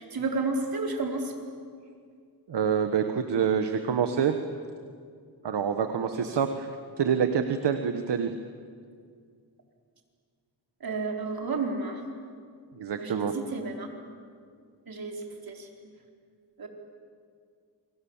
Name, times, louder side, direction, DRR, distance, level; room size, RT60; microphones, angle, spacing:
voice 1, 0.0-1.3 6.0-6.4 10.8-12.0 13.0-13.9 14.9-15.9 16.6-16.7, right 3 dB, 55° right, 2 dB, 4.4 m, -32 dB
voice 2, 2.5-4.4 5.4-6.7 7.0-8.3 12.8-13.3, right 7 dB, 75° right, 7 dB, 1.4 m, -26 dB
28.5 x 25.0 x 7.3 m, 2.2 s
cardioid pair, 75°, 42 cm